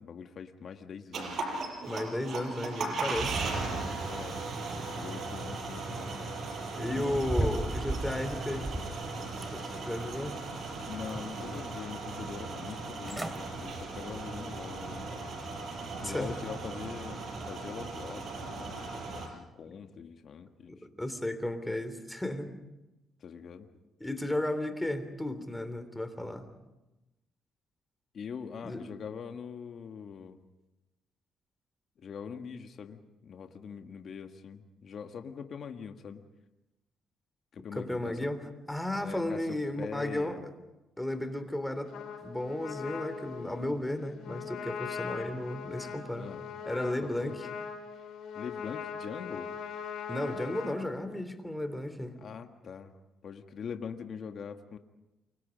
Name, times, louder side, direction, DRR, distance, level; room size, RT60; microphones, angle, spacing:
voice 1, 0.0-1.5 2.9-4.6 4.9-6.3 7.4-7.5 10.9-15.3 16.0-20.7 23.2-23.7 28.1-30.4 32.0-36.2 37.5-38.2 38.9-39.5 39.8-40.4 46.2-46.4 47.0-47.4 48.3-49.5 52.2-52.9 53.2-54.8, left 6 dB, 55° left, 6 dB, 1.6 m, -43 dB
sound 1, 1.1-19.3, right 3 dB, 60° right, 5.8 m, -37 dB
voice 2, 1.8-3.5 6.7-8.7 9.5-10.4 16.0-16.4 19.7-19.8 20.7-22.5 24.0-26.5 28.6-28.9 37.7-38.4 38.7-40.4 41.0-42.0 42.2-46.3 46.6-47.5 50.1-52.2, left 1 dB, 5° left, 10 dB, 3.3 m, -34 dB
sound 2, 7.0-9.0 9.4-10.3 10.6-11.5 11.9-12.0 12.7-12.8 13.0-13.4 13.9-14.1 14.6-14.7, right 1 dB, 15° right, 3.0 m, -36 dB
Trumpet, 41.9-50.8, left 6 dB, 75° left, 5.1 m, -40 dB
29.0 x 24.5 x 5.2 m, 0.97 s
cardioid pair, 90°, 0 cm